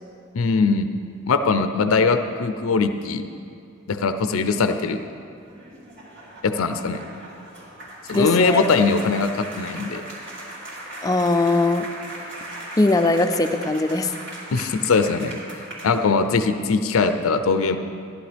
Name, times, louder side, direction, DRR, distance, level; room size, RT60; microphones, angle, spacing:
voice 1, 0.3-0.9 1.3-3.3 3.9-5.0 6.4-7.0 8.1-10.0 14.5-15.4 15.8-17.8, left 4 dB, 80° left, 8 dB, 0.5 m, -21 dB
sound 1, 5.4-16.4, right 1 dB, 55° right, 2.7 m, -38 dB
voice 2, 8.1-8.6 11.0-11.9 12.8-14.1, left 2 dB, 15° left, 7 dB, 0.3 m, -20 dB
14.5 x 11.0 x 3.4 m, 2.4 s
head